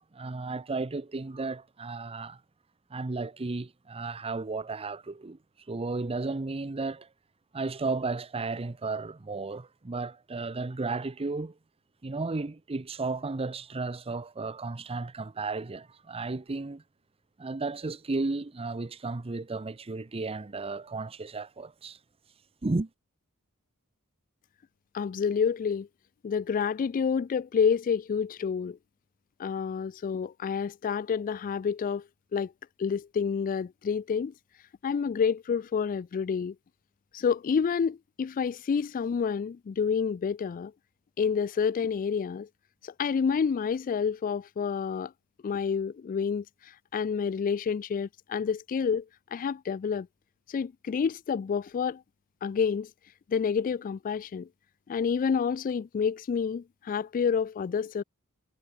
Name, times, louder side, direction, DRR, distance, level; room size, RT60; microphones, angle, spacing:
voice 1, 0.0-2.4 2.9-5.4 5.7-7.1 7.5-11.5 12.0-16.8 17.4-22.0 22.6-22.9, right 3 dB, 25° right, 0.6 m, -34 dB
voice 2, 24.9-25.9 26.2-28.8 29.4-32.0 32.3-32.5 32.8-34.3 34.8-36.5 37.1-40.7 41.2-42.5 42.8-45.1 45.4-49.1 49.3-50.1 50.5-52.0 52.4-52.9 53.3-54.5 54.9-58.0, left 6 dB, 40° left, 0.3 m, -28 dB
head